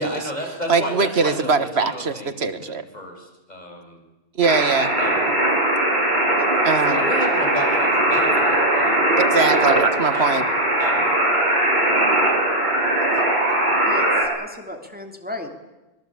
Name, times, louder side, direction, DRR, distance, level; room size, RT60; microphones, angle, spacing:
voice 1, 0.0-4.0 5.0-5.3 7.0-9.6 10.1-10.5 10.8-11.1, equal, 40° left, 1 dB, 6.2 m, -32 dB
voice 2, 0.7-2.8 4.4-4.9 6.6-7.0 9.2-10.4, right 4 dB, 90° right, 11 dB, 1.7 m, -21 dB
sound 1, 4.4-14.3, right 1 dB, 45° right, 7.8 m, -20 dB
voice 3, 6.4-6.8 13.9-14.1 14.3-15.5, left 2 dB, 10° right, 3 dB, 3.1 m, -35 dB
25.5 x 21.5 x 8.6 m, 1.1 s
omnidirectional pair, 1.0 m